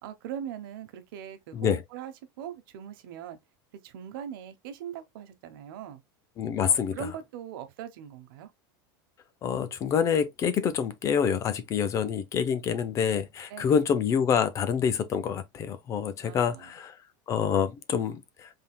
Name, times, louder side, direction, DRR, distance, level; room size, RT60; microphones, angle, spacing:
voice 1, 0.0-3.4 3.8-6.0 6.6-8.5 13.5-13.9 16.2-16.8, right 9 dB, 65° right, 1.1 m, -41 dB
voice 2, 6.4-7.0 9.4-16.9 17.3-18.5, left 7 dB, 25° left, 0.6 m, -27 dB
5.5 x 3.6 x 2.2 m
supercardioid pair, 160°, 12 cm